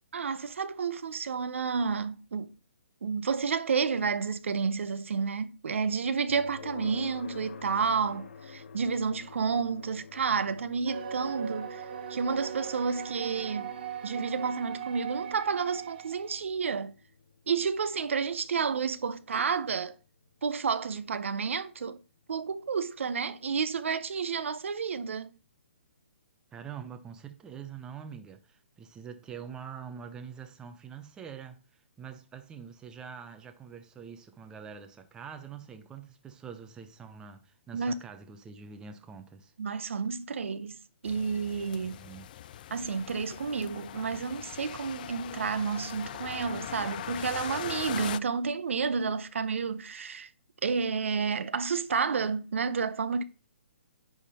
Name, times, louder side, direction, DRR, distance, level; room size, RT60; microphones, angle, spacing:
voice 1, 0.1-2.5 3.0-11.8 12.1-13.7 14.0-16.9 17.5-19.9 20.4-22.0 22.3-25.3 37.7-37.9 39.6-42.0 42.7-50.3 50.6-53.2, right 5 dB, 75° right, 0.7 m, -30 dB
sound 1, 6.3-21.2, left 6 dB, 70° left, 0.8 m, -50 dB
sound 2, 10.9-16.4, right 8 dB, 50° right, 1.4 m, -39 dB
voice 2, 26.5-31.6 32.0-39.5 41.8-42.3, right 7 dB, 10° right, 0.7 m, -45 dB
sound 3, 41.0-48.2, left 11 dB, 40° left, 0.3 m, -40 dB
9.9 x 3.7 x 4.2 m
hypercardioid pair, 150°, 7 cm